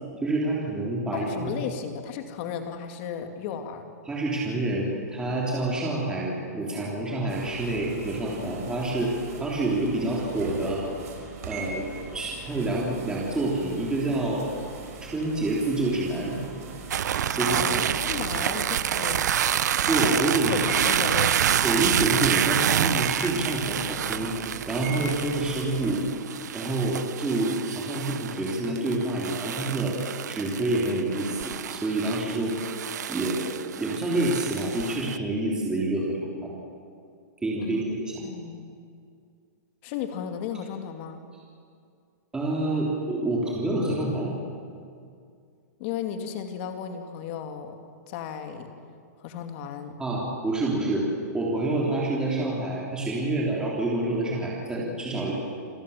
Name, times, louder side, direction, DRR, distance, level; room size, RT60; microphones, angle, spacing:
voice 1, 0.2-1.5 4.1-10.8 11.5-11.9 12.1-14.5 15.0-16.4 17.3-17.8 19.9-20.6 21.6-24.3 24.7-26.0 26.5-30.0 30.3-32.6 33.1-33.4 33.8-36.5 37.4-38.2 42.3-44.3 50.0-51.1 51.3-55.3, right 2 dB, 10° right, -4 dB, 3.4 m, -27 dB
voice 2, 1.1-3.8 17.4-19.2 20.0-21.7 37.6-37.8 38.2-38.8 39.8-41.3 45.8-47.8 48.1-48.7 49.2-50.0, left 8 dB, 40° left, 6 dB, 2.6 m, -34 dB
sound 1, 7.3-25.9, right 4 dB, 60° right, 5.5 m, -41 dB
sound 2, 16.9-35.2, right 9 dB, 80° right, 0.8 m, -28 dB
28.0 x 17.5 x 7.2 m, 2.3 s
hypercardioid pair, 155°, 9 cm